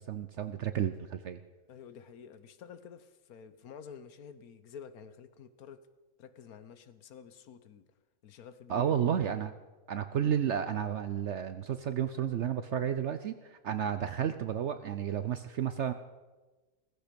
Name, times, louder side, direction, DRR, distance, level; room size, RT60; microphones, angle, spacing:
voice 1, 0.0-1.4 8.7-9.5 9.9-15.9, right 9 dB, 60° right, 11 dB, 0.8 m, -32 dB
voice 2, 1.7-5.8 6.2-7.8 8.2-9.1, left 7 dB, 75° left, 13 dB, 1.4 m, -50 dB
16.0 x 15.0 x 5.2 m, 1.2 s
omnidirectional pair, 1.6 m